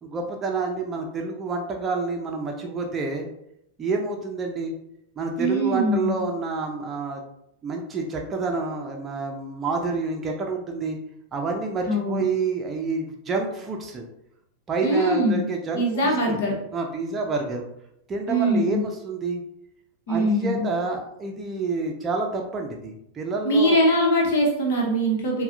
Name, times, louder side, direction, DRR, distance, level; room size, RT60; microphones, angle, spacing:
voice 1, 0.0-3.3 3.8-4.7 5.2-7.2 7.6-11.0 11.3-14.1 14.7-16.4 16.7-17.7 18.1-19.4 20.1-23.8, right 4 dB, 20° right, 2 dB, 0.7 m, -28 dB
voice 2, 5.4-6.2 11.9-12.2 14.8-15.4 15.7-16.5 18.3-18.8 20.1-20.7 23.4-25.4, equal, 55° left, -1 dB, 1.2 m, -22 dB
6.9 x 2.4 x 2.5 m, 0.78 s
figure-of-eight pair, 90°, 0 cm